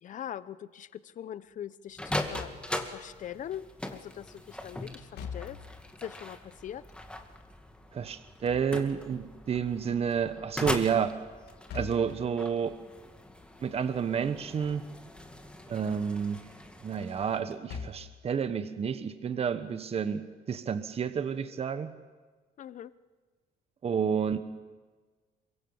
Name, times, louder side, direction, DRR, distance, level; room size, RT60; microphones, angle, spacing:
voice 1, 0.0-2.5 2.8-5.6 6.0-6.8 22.6-22.9, left 10 dB, 50° left, 16 dB, 0.8 m, -42 dB
sound 1, 1.9-17.4, left 1 dB, 5° left, 2.2 m, -40 dB
Slam / Thump thud, 2.0-3.0 5.0-5.9 8.1-9.2 11.5-12.3 14.3-14.9 15.3-15.4 17.4-18.2, left 6 dB, 75° left, 2.7 m, -43 dB
voice 2, 7.9-11.1 11.7-12.8 13.6-14.8 15.7-16.4 16.8-21.9 23.8-24.4, right 7 dB, 35° right, 10 dB, 1.2 m, -30 dB
24.0 x 22.5 x 7.2 m, 1.4 s
cardioid pair, 110°, 17 cm